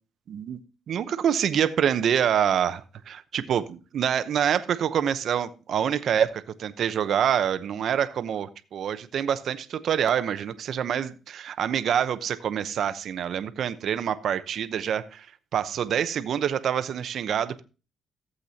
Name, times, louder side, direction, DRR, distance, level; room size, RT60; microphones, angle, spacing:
voice 1, 0.3-0.6 0.9-15.3 15.5-17.6, right 9 dB, 65° right, 13 dB, 0.8 m, -26 dB
15.0 x 8.0 x 2.8 m, 0.33 s
cardioid pair, 90°, 0 cm